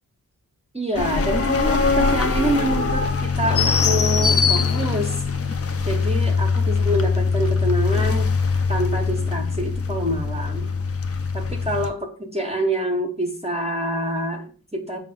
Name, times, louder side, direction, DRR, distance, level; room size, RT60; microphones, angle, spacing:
voice 1, 0.7-5.2 5.9-8.3 8.7-10.7 11.3-15.0, right 1 dB, 20° right, 2 dB, 0.6 m, -26 dB
sound 1, 0.9-11.9, left 4 dB, 40° left, 0.4 m, -22 dB
4.7 x 2.1 x 3.7 m, 0.41 s
wide cardioid pair, 80°, 35 cm